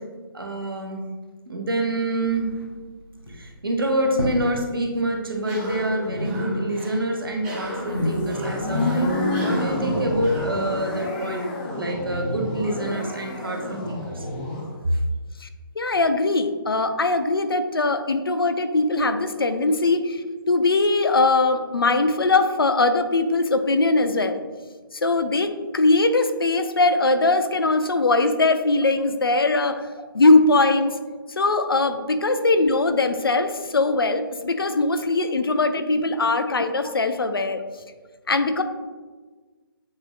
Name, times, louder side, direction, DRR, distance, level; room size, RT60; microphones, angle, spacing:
voice 1, 0.3-1.0 1.5-2.5 3.3-14.3 14.8-15.0 35.9-36.0, right 1 dB, 65° right, 2 dB, 0.8 m, -27 dB
sound 1, 2.2-2.9 3.1-3.5 4.0-4.6 4.9-5.8 6.0-7.0 7.3-11.0, left 1 dB, 90° left, 1.0 m, -32 dB
Cough, 5.4-11.2, equal, 15° right, 0.7 m, -38 dB
sound 2, 7.9-14.7, left 1 dB, 20° left, 0.6 m, -28 dB
voice 2, 15.8-24.4 25.0-29.8 30.1-30.9 31.4-37.6 38.3-38.6, left 3 dB, 70° left, 9 dB, 0.4 m, -21 dB
7.7 x 2.7 x 2.2 m, 1.4 s
figure-of-eight pair, 140°, 12 cm